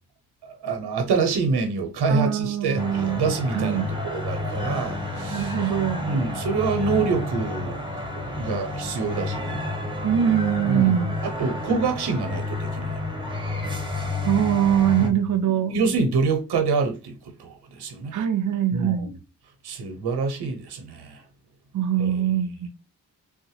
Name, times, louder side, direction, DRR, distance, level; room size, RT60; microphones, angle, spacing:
voice 1, 0.4-5.6 6.0-7.8 8.1-9.6 10.7-11.0 11.2-13.0 15.0-15.2 15.7-18.1 18.7-19.1 19.6-21.2 22.0-22.2, right 4 dB, 75° right, 0.9 m, -26 dB
voice 2, 2.1-3.2 3.5-3.9 5.3-6.1 10.0-11.1 14.2-15.7 18.1-19.1 21.7-22.7, right 10 dB, 50° right, 0.5 m, -23 dB
sound 1, 2.8-15.1, left 2 dB, 10° right, 0.9 m, -30 dB
3.4 x 2.1 x 3.2 m
supercardioid pair, 50°, 39 cm